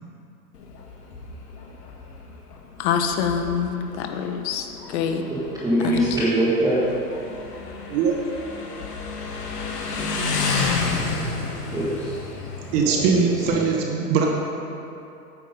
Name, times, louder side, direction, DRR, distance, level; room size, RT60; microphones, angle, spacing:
Motorcycle, 0.5-13.5, left 4 dB, 85° left, 1.5 m, -31 dB
voice 1, 2.8-4.7 4.9-5.2 5.8-6.0, left 7 dB, 45° left, 6 dB, 0.9 m, -24 dB
voice 2, 5.3-6.8 11.7-12.2 12.7-13.2 13.5-13.6, right 1 dB, 5° right, -9 dB, 1.6 m, -23 dB
voice 3, 12.7-14.3, right 5 dB, 40° right, 1 dB, 1.1 m, -21 dB
9.1 x 7.5 x 5.3 m, 2.8 s
hypercardioid pair, 130°, 46 cm